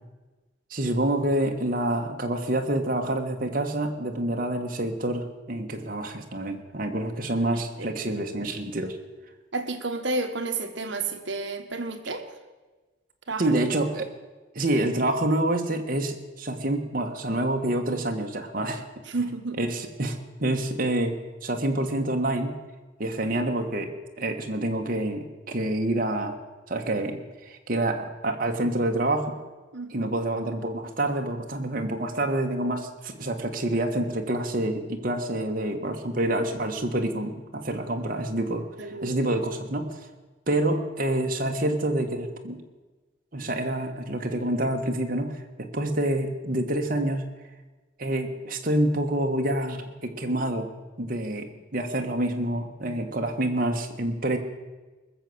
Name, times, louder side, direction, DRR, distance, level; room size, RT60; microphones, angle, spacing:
voice 1, 0.7-9.0 13.4-14.1 14.6-18.8 19.6-21.2 21.4-22.6 23.0-26.4 26.7-27.2 27.5-29.4 29.9-40.0 40.5-42.6 43.3-47.3 48.0-50.7 51.0-51.5 51.7-54.4, right 1 dB, 45° right, 3 dB, 1.6 m, -27 dB
voice 2, 7.3-7.9 9.5-12.3 13.3-13.5 19.1-19.6 29.7-30.1 38.8-39.2, right 3 dB, 65° right, 6 dB, 1.4 m, -31 dB
20.5 x 7.1 x 7.9 m, 1.2 s
head